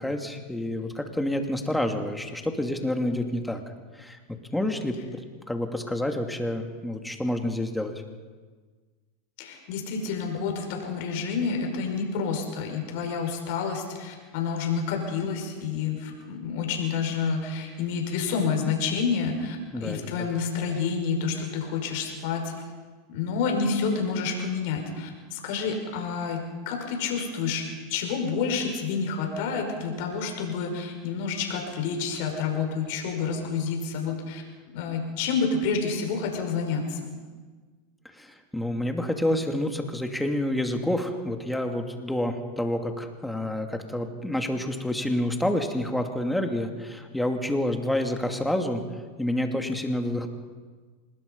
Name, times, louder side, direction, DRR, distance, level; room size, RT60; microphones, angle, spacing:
voice 1, 0.0-3.6 4.0-4.2 4.5-7.9 19.7-20.0 38.2-48.8 49.2-50.3, left 1 dB, 5° left, 4 dB, 2.5 m, -28 dB
voice 2, 9.4-22.5 23.1-27.6 27.9-34.4 34.7-37.1, left 5 dB, 65° left, 2 dB, 5.6 m, -29 dB
26.0 x 20.0 x 5.4 m, 1.4 s
hypercardioid pair, 110°, 0 cm